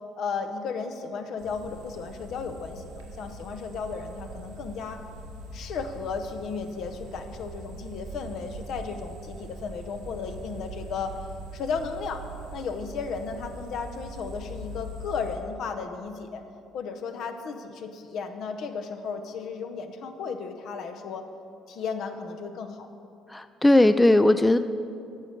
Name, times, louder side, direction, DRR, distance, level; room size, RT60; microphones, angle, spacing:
voice 1, 0.2-5.0 5.5-11.1 11.5-12.2 12.5-16.4 16.7-21.2 21.7-22.9, left 5 dB, 65° left, 6 dB, 0.7 m, -34 dB
sound 1, 1.4-15.4, right 2 dB, 90° right, 1.1 m, -42 dB
voice 2, 23.3-24.6, left 1 dB, 10° left, 11 dB, 0.3 m, -18 dB
9.3 x 6.4 x 5.1 m, 2.6 s
supercardioid pair, 65°, 0 cm